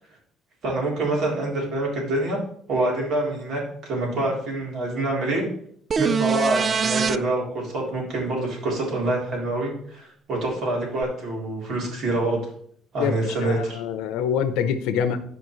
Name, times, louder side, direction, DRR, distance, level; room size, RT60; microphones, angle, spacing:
voice 1, 0.6-2.4 2.7-5.4 6.0-12.4 12.9-13.8 15.0-15.2, right 2 dB, 65° right, -2 dB, 3.5 m, -26 dB
Synth bleep, 5.9-7.2 11.0-11.1, right 6 dB, 35° right, 0.3 m, -22 dB
voice 2, 13.0-15.2, left 8 dB, 90° left, 11 dB, 0.7 m, -25 dB
13.0 x 5.0 x 3.2 m, 0.63 s
cardioid pair, 105°, 0 cm